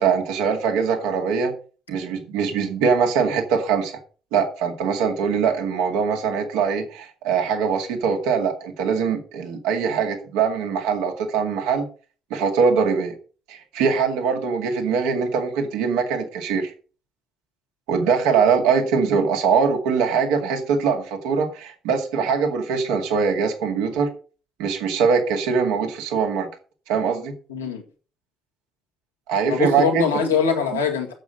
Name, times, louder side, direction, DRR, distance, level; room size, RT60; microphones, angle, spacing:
voice 1, 0.0-1.5 1.9-3.9 4.3-11.8 12.3-13.1 13.5-16.7 17.9-24.1 24.6-26.5 26.9-27.3 29.3-30.2, right 6 dB, 70° right, 3 dB, 2.1 m, -22 dB
voice 2, 27.5-27.8 29.4-31.1, left 6 dB, 85° left, 0 dB, 1.9 m, -22 dB
8.9 x 7.5 x 5.2 m, 0.38 s
figure-of-eight pair, 45°, 0 cm